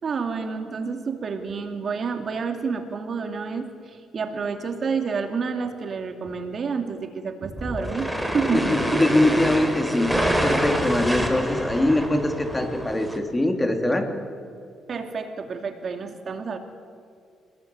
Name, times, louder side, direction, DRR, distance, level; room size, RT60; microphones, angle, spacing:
voice 1, 0.0-9.1 14.9-16.6, right 5 dB, 50° right, 6 dB, 2.7 m, -29 dB
sound 1, 7.6-13.2, equal, ahead, 3.7 m, -27 dB
voice 2, 8.5-10.1 10.4-14.1, left 1 dB, 15° left, 5 dB, 3.0 m, -22 dB
27.0 x 20.0 x 9.6 m, 2.4 s
cardioid pair, 90°, 0 cm